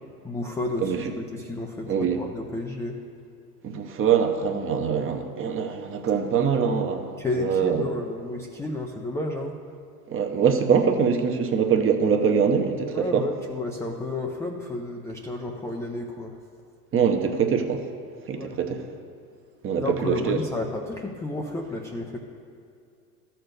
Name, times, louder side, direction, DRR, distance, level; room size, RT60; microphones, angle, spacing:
voice 1, 0.2-3.0 7.2-9.6 12.9-16.4 18.3-18.8 19.8-22.2, left 2 dB, 5° left, 0 dB, 0.4 m, -31 dB
voice 2, 0.8-1.1 1.9-2.2 3.6-7.1 7.4-7.8 10.1-13.3 16.9-17.8 18.3-18.9 19.6-20.4, right 7 dB, 25° right, 5 dB, 0.9 m, -23 dB
13.0 x 4.4 x 6.6 m, 2.5 s
hypercardioid pair, 95°, 47 cm